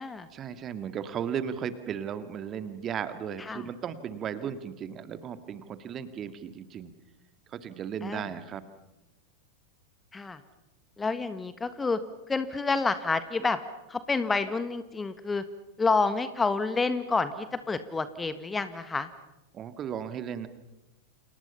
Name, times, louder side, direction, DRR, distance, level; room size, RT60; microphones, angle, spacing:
voice 1, 0.3-6.9 7.5-8.6 19.5-20.5, right 8 dB, 30° right, 11 dB, 2.0 m, -35 dB
voice 2, 11.0-12.0 12.3-13.6 13.9-15.4 15.8-19.1, left 4 dB, 15° left, 12 dB, 1.5 m, -28 dB
29.5 x 28.5 x 5.7 m, 0.95 s
figure-of-eight pair, 90°, 0 cm